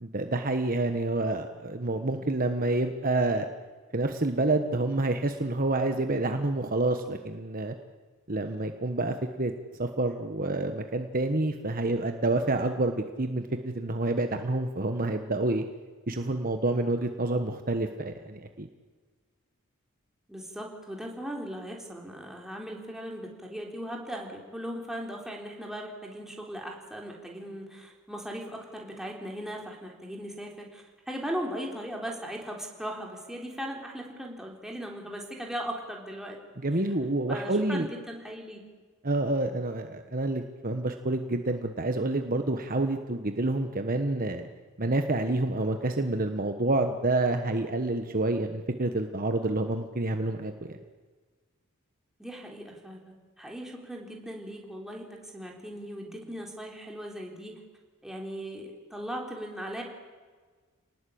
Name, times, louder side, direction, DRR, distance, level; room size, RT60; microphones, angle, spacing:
voice 1, 0.0-3.5 3.9-7.7 8.3-9.5 9.8-15.6 16.1-18.7 36.6-37.9 39.0-44.5 44.8-50.8, right 2 dB, 40° right, 6 dB, 1.3 m, -28 dB
voice 2, 20.3-36.4 37.3-38.7 52.2-57.6 58.0-59.8, equal, ahead, -1 dB, 3.9 m, -38 dB
28.5 x 19.5 x 8.7 m, 1.5 s
head